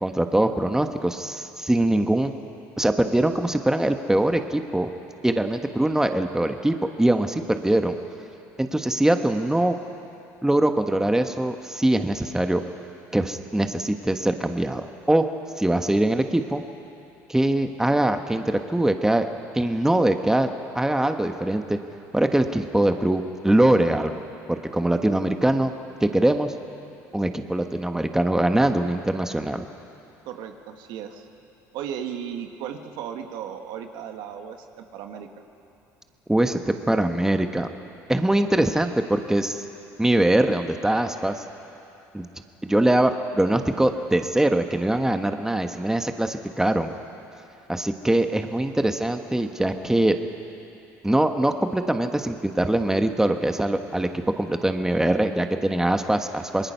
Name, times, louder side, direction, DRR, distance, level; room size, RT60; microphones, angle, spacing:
voice 1, 0.0-2.3 2.8-4.9 5.2-7.9 8.6-9.7 10.4-12.6 13.1-15.3 15.6-16.6 17.3-19.3 19.5-20.5 20.7-21.8 22.1-24.1 24.5-25.7 26.0-26.5 27.1-29.6 36.3-37.7 38.1-39.6 40.0-41.3 42.1-42.3 42.6-46.9 47.7-50.2 51.0-54.1 54.4-56.7, right 1 dB, 5° right, 6 dB, 1.3 m, -22 dB
voice 2, 30.2-31.3 31.7-35.3, right 8 dB, 75° right, 6 dB, 1.5 m, -35 dB
27.0 x 20.5 x 5.7 m, 2.7 s
supercardioid pair, 80°, 8 cm